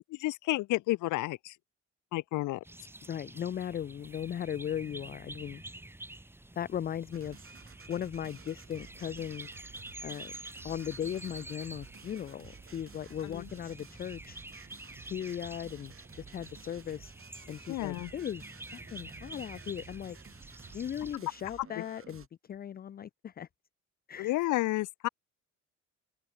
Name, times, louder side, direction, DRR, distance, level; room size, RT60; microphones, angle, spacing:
voice 1, 0.0-1.5 2.1-2.6 13.2-13.5 17.7-18.1 21.8-21.9 24.2-25.1, left 18 dB, 80° left, 0.6 m, -31 dB
sound 1, 2.6-21.2, right 2 dB, 10° right, 0.9 m, -48 dB
voice 2, 3.0-5.6 6.6-9.5 10.0-10.3 10.6-14.4 15.0-17.1 17.5-18.4 18.7-20.2 20.7-23.5 24.1-24.5, left 9 dB, 30° left, 0.4 m, -38 dB
sound 2, 7.1-22.3, right 7 dB, 45° right, 6.5 m, -54 dB
cardioid pair, 90°, 30 cm